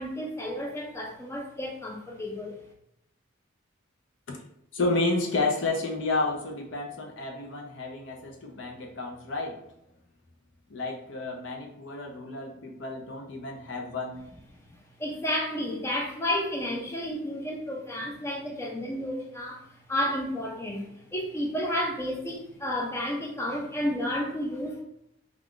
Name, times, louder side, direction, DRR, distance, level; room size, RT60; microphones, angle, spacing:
voice 1, 0.0-2.6 15.0-24.8, left 1 dB, 15° left, 0 dB, 0.4 m, -31 dB
voice 2, 4.7-9.6 10.7-14.3, left 2 dB, 60° left, 2 dB, 0.6 m, -31 dB
2.4 x 2.3 x 3.6 m, 0.76 s
head